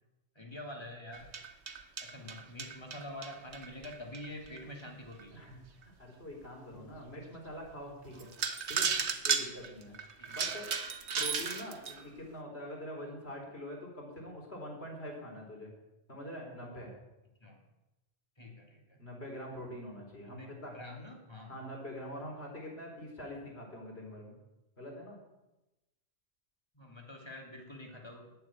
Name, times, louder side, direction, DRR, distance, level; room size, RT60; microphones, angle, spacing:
voice 1, 0.3-1.3 2.0-5.4 6.6-7.1 8.1-8.3 10.2-10.5 11.2-11.4 17.4-17.6 18.4-19.0 20.3-21.5 26.7-28.3, left 1 dB, 25° left, 0 dB, 3.0 m, -47 dB
sound 1, 1.1-4.6 5.2-5.3 5.8-5.9 6.4-6.5 7.7-7.8 8.2-12.0, right 6 dB, 90° right, 1.4 m, -35 dB
voice 2, 5.8-8.3 8.7-8.9 9.2-10.0 10.3-10.7 11.2-15.7 16.1-16.9 19.0-20.8 21.5-24.3 24.8-25.2, left 1 dB, 70° left, 0 dB, 4.7 m, -44 dB
11.5 x 10.0 x 9.0 m, 0.99 s
omnidirectional pair, 1.1 m